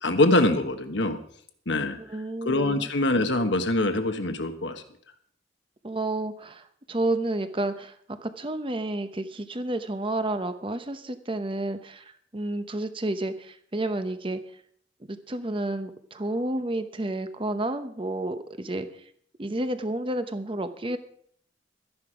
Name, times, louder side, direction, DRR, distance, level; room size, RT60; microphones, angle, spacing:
voice 1, 0.0-1.2 1.7-2.0 2.4-4.7, left 2 dB, 70° left, 8 dB, 1.2 m, -23 dB
voice 2, 2.0-2.9 5.8-7.9 8.2-14.4 15.1-18.9 19.4-21.0, right 1 dB, 30° right, 10 dB, 0.8 m, -30 dB
12.5 x 10.5 x 5.0 m, 0.63 s
head